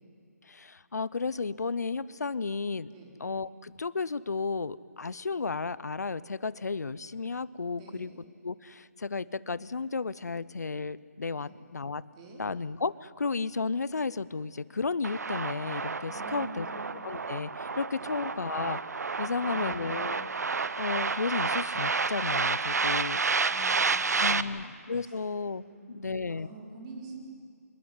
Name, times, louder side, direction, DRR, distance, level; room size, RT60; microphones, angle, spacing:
voice 1, 0.5-2.9 3.2-8.1 8.4-12.0 12.4-16.7 17.0-18.8 19.2-20.3 20.8-23.2 24.2-26.5, left 4 dB, 85° left, 19 dB, 0.7 m, -33 dB
voice 2, 7.7-8.1 11.3-11.5 12.1-12.4 16.0-16.7 18.0-18.1 19.2-20.1 23.5-24.7 25.0-25.1 25.6-27.3, right 3 dB, 20° right, 0 dB, 4.4 m, -47 dB
sound 1, 15.0-24.4, right 4 dB, 75° right, 1.0 m, -30 dB
25.5 x 20.5 x 9.6 m, 2.3 s
hypercardioid pair, 160°, 9 cm